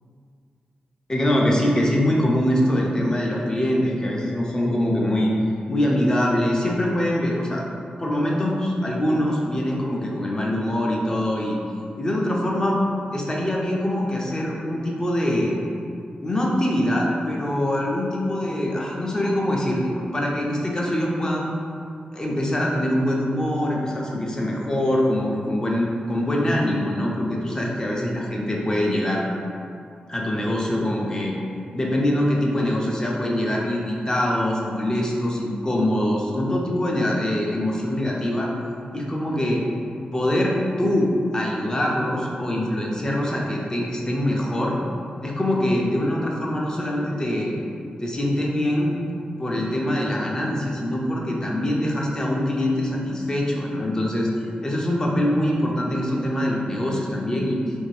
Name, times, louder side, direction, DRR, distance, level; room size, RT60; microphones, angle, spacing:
voice 1, 1.1-5.3 5.7-7.6 8.0-11.6 12.0-12.8 13.1-15.6 16.2-21.5 22.1-29.2 30.1-31.4 31.7-38.5 38.9-39.6 40.1-44.8 45.2-47.5 48.0-48.9 49.4-54.3 54.6-57.6, left 1 dB, 25° left, -2 dB, 0.5 m, -23 dB
2.6 x 2.5 x 3.2 m, 2.4 s
wide cardioid pair, 105°, 3 cm